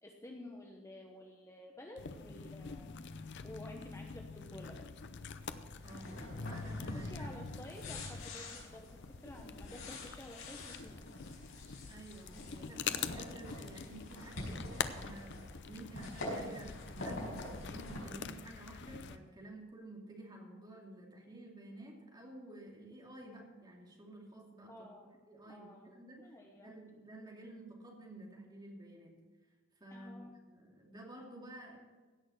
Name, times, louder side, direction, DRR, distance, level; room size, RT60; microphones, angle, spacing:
voice 1, 0.0-3.0 3.4-4.8 6.9-11.1 24.7-25.2 25.5-25.9 26.2-26.7 29.9-30.3, left 1 dB, 15° left, 1 dB, 1.0 m, -51 dB
sound 1, 2.0-19.2, left 5 dB, 60° left, 0.6 m, -45 dB
sound 2, 5.3-18.0, left 1 dB, 80° left, 5.0 m, -47 dB
voice 2, 5.8-7.4 11.9-15.4 15.7-24.7 25.3-26.2 26.6-29.1 29.8-31.8, right 1 dB, 20° right, -1 dB, 2.6 m, -51 dB
16.5 x 6.4 x 6.3 m, 1.3 s
head